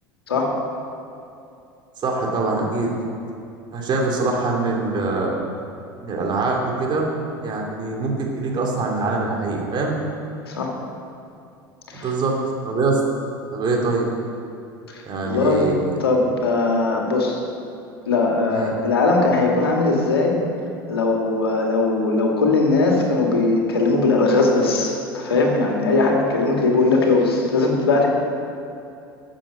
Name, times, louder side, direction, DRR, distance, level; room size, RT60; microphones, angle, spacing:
voice 1, 2.0-2.9 3.7-5.4 6.0-7.1 7.4-10.0 12.0-12.3 12.6-13.0 13.5-14.1 15.0-15.9 18.5-18.7, right 3 dB, 35° right, -1 dB, 2.9 m, -23 dB
voice 2, 14.9-17.4 18.1-20.4 20.9-28.1, left 3 dB, 85° left, 0 dB, 1.9 m, -20 dB
13.0 x 7.4 x 6.1 m, 2.6 s
hypercardioid pair, 80°, 12 cm